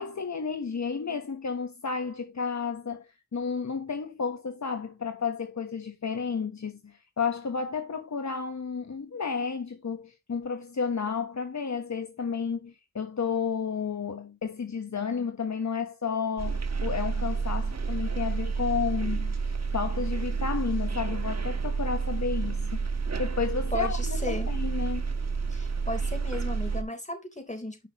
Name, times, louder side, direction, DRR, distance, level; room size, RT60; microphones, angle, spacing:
voice 1, 0.0-3.1 3.3-19.4 19.7-22.8 23.2-25.0, left 5 dB, 60° left, 1.3 m, -32 dB
sound 1, 16.4-26.8, right 5 dB, 55° right, 1.5 m, -30 dB
voice 2, 23.7-24.5 25.5-27.9, left 1 dB, 20° left, 3.8 m, -35 dB
10.5 x 5.7 x 3.1 m
cardioid pair, 45°, 32 cm